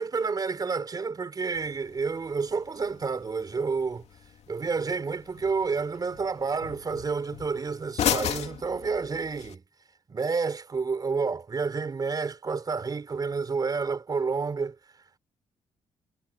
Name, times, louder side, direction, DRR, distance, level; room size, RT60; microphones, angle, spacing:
voice 1, 0.0-4.0 4.5-9.6 10.1-14.8, right 4 dB, 35° right, 4.7 m, -29 dB
sound 1, 1.5-9.5, left 9 dB, 65° left, 2.6 m, -36 dB
cardioid pair, 105°, 12 cm